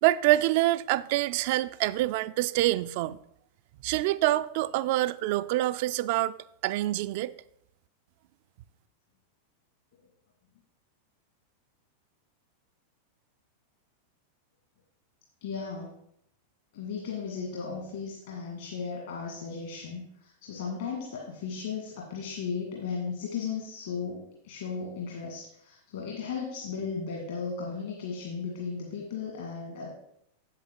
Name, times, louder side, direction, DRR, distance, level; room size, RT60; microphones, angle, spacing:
voice 1, 0.0-3.2 3.8-6.3 6.6-7.3, right 16 dB, 50° right, 0.3 m, -26 dB
voice 2, 15.4-15.9 16.7-29.9, left 5 dB, 60° left, 1.8 m, -36 dB
8.0 x 8.0 x 3.7 m
figure-of-eight pair, 90°, 0 cm